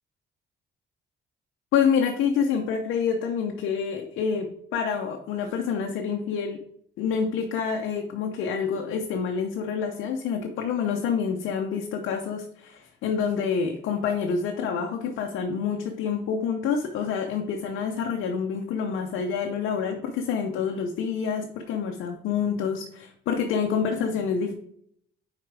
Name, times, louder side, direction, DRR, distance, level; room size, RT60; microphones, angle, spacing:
voice 1, 1.7-6.6 7.0-24.5, left 6 dB, 85° left, 3 dB, 0.6 m, -27 dB
4.9 x 4.6 x 4.7 m, 0.68 s
cardioid pair, 90°, 20 cm